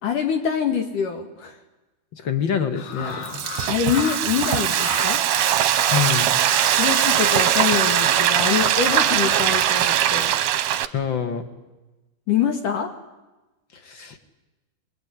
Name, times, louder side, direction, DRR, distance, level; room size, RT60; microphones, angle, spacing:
voice 1, 0.0-1.6 3.7-5.2 6.7-10.3 12.3-12.9, left 7 dB, 60° left, 5 dB, 3.0 m, -25 dB
voice 2, 2.1-3.4 5.9-6.3 10.9-11.4 13.7-14.2, left 8 dB, 35° left, 7 dB, 2.2 m, -26 dB
sound 1, 2.8-9.6, left 8 dB, 80° left, 3.6 m, -34 dB
Frying (food), 3.0-10.9, right 11 dB, 70° right, 2.2 m, -21 dB
25.5 x 22.5 x 9.9 m, 1.1 s
omnidirectional pair, 4.5 m